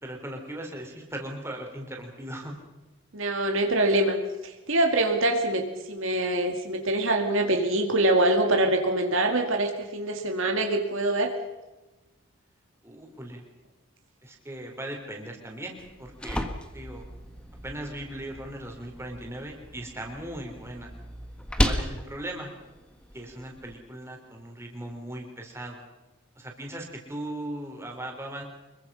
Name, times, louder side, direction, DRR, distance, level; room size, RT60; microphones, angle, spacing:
voice 1, 0.0-2.6 12.8-13.4 14.2-16.5 16.7-17.0 17.6-20.9 21.6-22.5 23.1-25.9 26.4-28.4, right 1 dB, 10° right, 1 dB, 3.8 m, -38 dB
voice 2, 3.1-4.2 4.4-11.3, right 1 dB, 60° right, 4 dB, 2.3 m, -24 dB
sound 1, 15.8-23.7, equal, 5° left, 1.5 m, -34 dB
25.5 x 22.5 x 5.7 m, 1.1 s
head